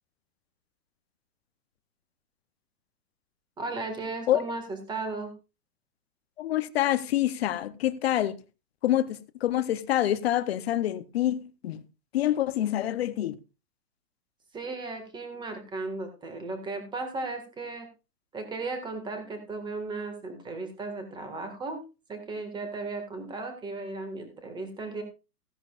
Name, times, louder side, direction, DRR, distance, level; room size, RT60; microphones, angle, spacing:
voice 1, 3.6-5.3 14.5-17.9 18.3-21.8 22.1-25.0, right 3 dB, 10° right, 1.8 m, -35 dB
voice 2, 6.4-8.4 8.8-11.8 12.1-13.4, left 12 dB, 40° left, 0.8 m, -26 dB
15.5 x 10.5 x 2.4 m
hypercardioid pair, 155°, 49 cm